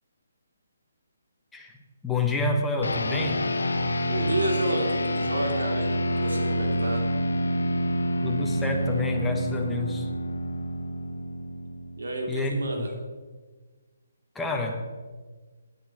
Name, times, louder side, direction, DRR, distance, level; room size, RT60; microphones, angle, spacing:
voice 1, 2.0-3.5 8.2-10.1 12.3-12.9 14.3-14.9, left 2 dB, 5° left, 2 dB, 1.2 m, -28 dB
sound 1, 2.8-12.5, equal, 85° left, 1.0 m, -28 dB
voice 2, 4.1-7.1 12.0-12.9, right 2 dB, 75° right, 2 dB, 2.8 m, -30 dB
9.6 x 7.9 x 7.2 m, 1.4 s
hypercardioid pair, 155°, 0 cm